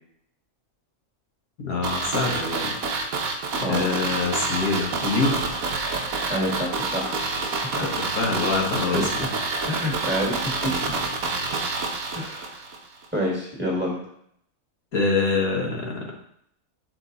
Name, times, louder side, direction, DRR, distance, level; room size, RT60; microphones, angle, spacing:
voice 1, 1.6-2.7 3.7-5.5 7.7-9.3 14.9-16.1, left 3 dB, 80° left, -1 dB, 1.8 m, -25 dB
sound 1, 1.8-12.8 13.0-13.1, right 3 dB, 85° right, 1.4 m, -28 dB
voice 2, 6.3-7.5 8.9-9.0 9.7-10.9 12.1-12.6 13.1-14.0, equal, 10° right, -4 dB, 1.9 m, -28 dB
7.3 x 4.5 x 4.0 m, 0.70 s
omnidirectional pair, 1.5 m